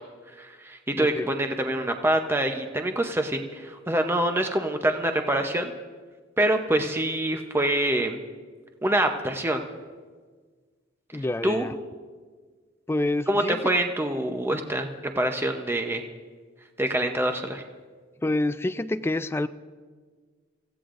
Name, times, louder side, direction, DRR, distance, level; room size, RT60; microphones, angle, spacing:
voice 1, 0.4-5.7 6.4-8.2 8.8-9.6 11.4-11.7 13.3-14.9 15.2-16.0 16.8-17.6, right 1 dB, 10° right, 5 dB, 0.7 m, -25 dB
voice 2, 0.9-1.3 11.1-11.8 12.9-13.6 18.2-19.5, left 2 dB, 10° left, 12 dB, 0.3 m, -27 dB
26.5 x 14.5 x 2.5 m, 1.5 s
head